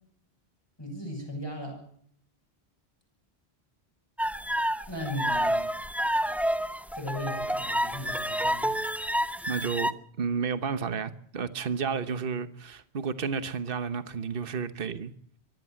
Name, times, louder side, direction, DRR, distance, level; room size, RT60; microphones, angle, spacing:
voice 1, 0.8-1.8 4.9-5.6 6.9-8.7, left 1 dB, 25° left, 7.2 m, -37 dB
sound 1, 4.2-9.9, equal, ahead, 0.9 m, -29 dB
voice 2, 9.5-9.9 10.2-15.1, right 6 dB, 60° right, 1.3 m, -31 dB
24.5 x 14.5 x 7.8 m
omnidirectional pair, 1.1 m